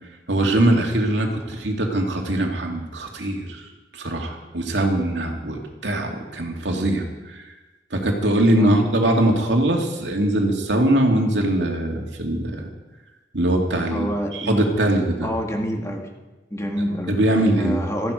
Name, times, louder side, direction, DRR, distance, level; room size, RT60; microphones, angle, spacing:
voice 1, 0.3-3.7 3.9-7.4 7.9-12.6 13.3-14.1 14.3-15.3 17.1-17.8, right 1 dB, 85° right, 1 dB, 2.5 m, -21 dB
voice 2, 13.9-14.6 15.2-16.1 16.5-17.2 17.6-18.1, equal, 15° left, 2 dB, 1.9 m, -27 dB
16.5 x 14.5 x 5.1 m, 1.2 s
head